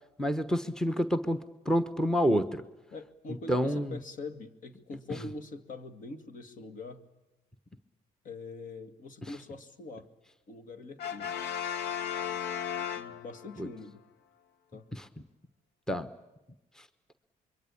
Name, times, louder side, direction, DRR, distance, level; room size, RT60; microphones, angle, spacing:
voice 1, 0.2-1.4 1.6-2.6 3.5-4.0 9.2-9.3 13.6-13.7 14.9-15.1 15.9-16.1 16.8-16.9, equal, 5° left, 10 dB, 1.0 m, -28 dB
voice 2, 2.9-7.0 8.2-10.1 10.5-11.4 12.9-14.0 14.7-14.9, left 3 dB, 50° left, 8 dB, 2.2 m, -43 dB
Brass instrument, 11.0-13.6, left 8 dB, 75° left, 1.2 m, -35 dB
26.0 x 23.0 x 8.6 m, 1.0 s
cardioid pair, 110°, 17 cm